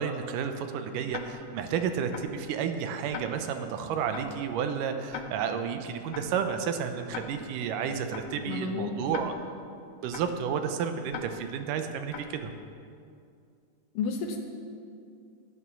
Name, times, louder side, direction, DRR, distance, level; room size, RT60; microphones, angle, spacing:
voice 1, 0.0-9.3 10.0-12.5, right 7 dB, 90° right, 7 dB, 2.3 m, -31 dB
Tick-tock, 1.1-1.2 2.1-2.2 3.1-3.2 4.1-4.2 5.1-5.2 6.1-6.2 7.1-7.2 8.1-8.2 9.1-9.2 10.1-10.2 11.1-11.2 12.1-12.2, left 9 dB, 70° left, 1.6 m, -38 dB
voice 2, 8.5-9.2 14.0-14.4, left 5 dB, 85° left, 2 dB, 2.6 m, -32 dB
12.0 x 9.4 x 6.0 m, 2.4 s
omnidirectional pair, 3.8 m